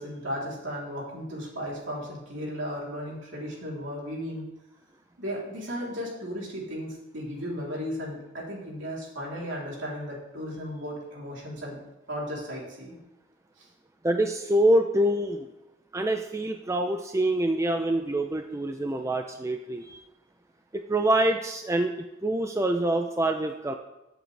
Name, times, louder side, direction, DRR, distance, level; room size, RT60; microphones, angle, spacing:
voice 1, 0.0-4.5 5.2-11.8 12.1-13.0 13.6-13.7, equal, 65° right, -4 dB, 3.4 m, -35 dB
voice 2, 14.0-15.5 15.9-20.0 20.9-23.7, right 1 dB, 15° right, 5 dB, 0.5 m, -25 dB
15.5 x 7.9 x 3.3 m, 0.95 s
head